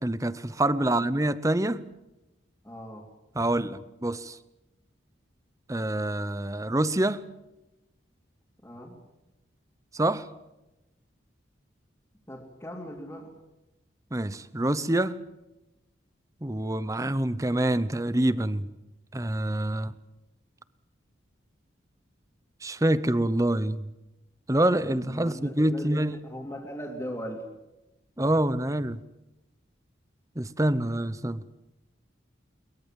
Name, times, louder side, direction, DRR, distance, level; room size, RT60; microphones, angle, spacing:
voice 1, 0.0-1.8 3.3-4.4 5.7-7.2 9.9-10.3 14.1-15.2 16.4-18.7 19.1-19.9 22.6-23.9 24.5-26.1 28.2-29.0 30.4-31.4, right 1 dB, 15° right, 16 dB, 0.8 m, -26 dB
voice 2, 2.6-3.1 8.6-8.9 12.3-13.3 25.0-27.4, equal, 15° left, -2 dB, 2.8 m, -39 dB
22.5 x 21.5 x 7.5 m, 0.98 s
head